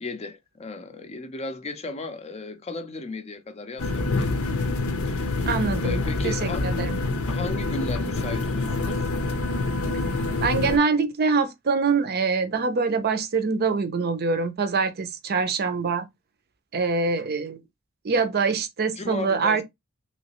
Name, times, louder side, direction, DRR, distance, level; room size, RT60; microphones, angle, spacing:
voice 1, 0.0-4.3 5.0-5.5 5.8-6.7 7.3-9.1 19.0-19.6, left 3 dB, 30° left, 0.5 m, -35 dB
sound 1, 3.8-10.8, left 2 dB, 80° left, 0.7 m, -26 dB
voice 2, 5.5-7.0 10.4-16.1 16.7-17.6 18.0-19.6, right 4 dB, 45° right, 0.5 m, -24 dB
3.1 x 2.9 x 2.9 m
head